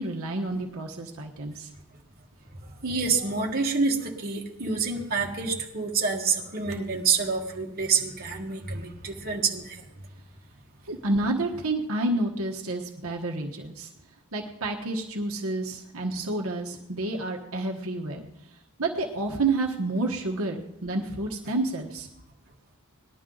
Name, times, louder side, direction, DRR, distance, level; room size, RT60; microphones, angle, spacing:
voice 1, 0.0-1.7 10.9-13.9 14.3-18.3 18.8-22.1, right 2 dB, 75° right, 1 dB, 1.2 m, -29 dB
voice 2, 2.5-9.9, right 5 dB, 45° right, 0 dB, 1.6 m, -27 dB
19.5 x 11.0 x 3.9 m, 0.89 s
head